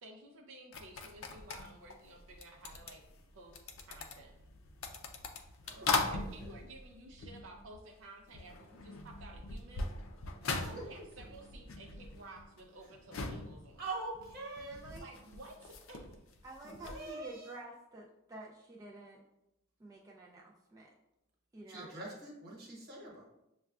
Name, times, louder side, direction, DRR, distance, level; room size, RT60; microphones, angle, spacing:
voice 1, 0.0-3.0 3.3-4.3 5.8-9.9 10.5-13.9 14.9-16.2, right 2 dB, 75° right, 0 dB, 0.5 m, -53 dB
sound 1, 0.7-8.0 8.3-17.1, left 3 dB, 85° left, 0.5 m, -41 dB
voice 2, 5.6-6.5 10.6-10.8 13.8-14.8 16.6-17.5 21.7-23.2, right 2 dB, 50° right, -2 dB, 1.2 m, -44 dB
voice 3, 14.6-15.1 16.4-19.2 19.8-20.9 21.5-22.0, right 2 dB, 15° right, -3 dB, 0.3 m, -50 dB
6.5 x 2.3 x 2.3 m, 0.89 s
head